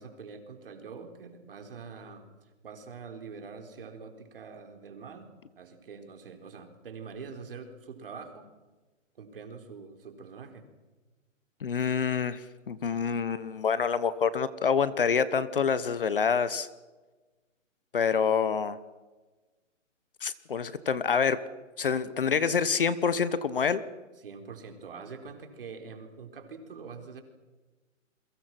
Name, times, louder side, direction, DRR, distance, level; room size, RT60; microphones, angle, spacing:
voice 1, 0.0-5.3 5.6-8.5 9.1-10.6 24.2-27.2, right 5 dB, 45° right, 5 dB, 4.2 m, -44 dB
voice 2, 11.6-16.7 17.9-18.8 20.2-21.4 21.8-23.8, left 6 dB, 45° left, 16 dB, 1.2 m, -27 dB
29.5 x 23.0 x 6.0 m, 1.2 s
hypercardioid pair, 175°, 39 cm